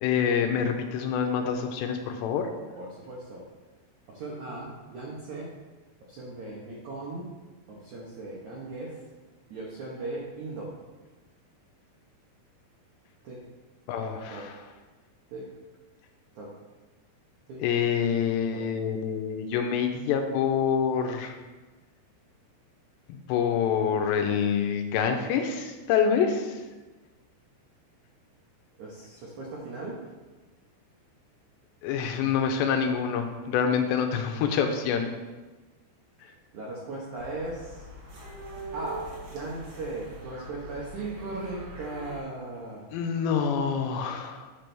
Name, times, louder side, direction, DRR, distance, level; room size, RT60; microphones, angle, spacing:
voice 1, 0.0-2.5 13.9-14.6 17.6-21.3 23.1-26.6 31.8-35.1 42.9-44.5, left 7 dB, 80° left, 5 dB, 2.7 m, -26 dB
voice 2, 2.8-3.4 4.1-5.5 6.1-7.3 7.7-9.0 9.5-10.7 13.2-13.4 14.3-14.4 15.3-15.5 16.4-16.5 17.5-17.6 18.5-18.6 28.8-30.0 36.5-37.9 38.7-42.9, right 2 dB, 85° right, -4 dB, 1.6 m, -38 dB
sound 1, 37.1-42.2, right 1 dB, 60° right, 3.0 m, -42 dB
9.6 x 3.3 x 6.0 m, 1.2 s
omnidirectional pair, 5.2 m